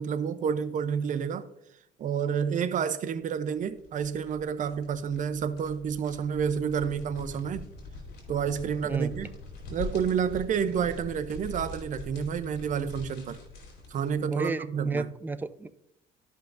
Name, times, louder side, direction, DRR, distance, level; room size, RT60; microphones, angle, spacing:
voice 1, 0.0-1.5 2.0-7.7 8.3-9.3 9.7-13.4 13.9-15.1, right 7 dB, 50° right, 0.7 m, -29 dB
sound 1, 3.5-14.2, left 2 dB, 75° left, 3.0 m, -43 dB
voice 2, 8.8-9.2 14.3-15.7, right 3 dB, 10° right, 0.4 m, -33 dB
13.0 x 5.6 x 2.6 m
cardioid pair, 110°, 17 cm